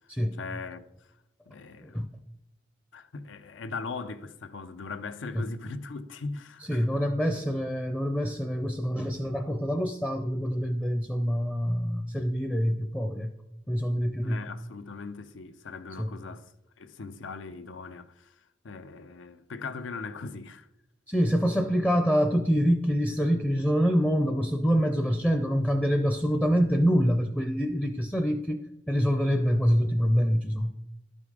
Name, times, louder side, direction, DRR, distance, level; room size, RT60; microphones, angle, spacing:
voice 1, 0.4-1.1 1.5-2.1 2.9-7.1 14.2-20.7, left 4 dB, 90° left, 0.6 m, -40 dB
voice 2, 6.7-13.3 13.7-14.4 16.0-16.1 21.1-30.8, equal, 10° left, 0.5 m, -26 dB
12.0 x 5.4 x 4.8 m
head